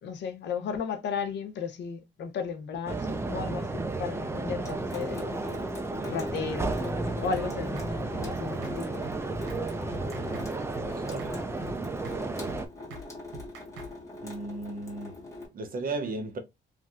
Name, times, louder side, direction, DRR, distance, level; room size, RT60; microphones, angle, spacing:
voice 1, 0.0-5.3 6.1-9.0, left 6 dB, 70° left, 0.7 m, -35 dB
sound 1, 2.9-12.7, right 3 dB, 15° right, 0.4 m, -33 dB
Water tap faucet / Sink (filling or washing) / Drip, 4.6-15.5, left 2 dB, 15° left, 1.2 m, -42 dB
sound 2, 7.3-7.5 7.8-7.9 8.2-8.3 8.6-8.8 9.0-9.2 9.5-9.6 9.9-10.5 10.7-10.9 11.2-11.3 11.6-11.8 12.0-12.2 12.5-12.6 12.9-13.1 13.3-13.9, right 1 dB, 90° right, 0.9 m, -43 dB
voice 2, 10.8-11.5 14.2-15.2 15.5-16.4, right 2 dB, 50° right, 0.8 m, -35 dB
3.1 x 2.6 x 2.3 m
cardioid pair, 110°, 19 cm